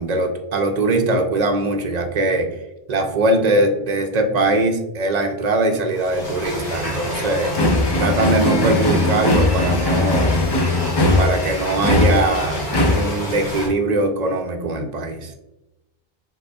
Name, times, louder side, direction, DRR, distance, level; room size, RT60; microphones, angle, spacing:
voice 1, 0.0-2.5 2.9-7.5 7.9-10.3 11.2-12.6 12.9-15.3, right 2 dB, 50° right, 5 dB, 0.6 m, -21 dB
sound 1, 5.9-13.7, equal, 85° left, 2.0 m, -28 dB
sound 2, 6.7-13.1, left 2 dB, 40° left, 0.3 m, -20 dB
5.2 x 3.6 x 2.3 m, 0.95 s
omnidirectional pair, 1.0 m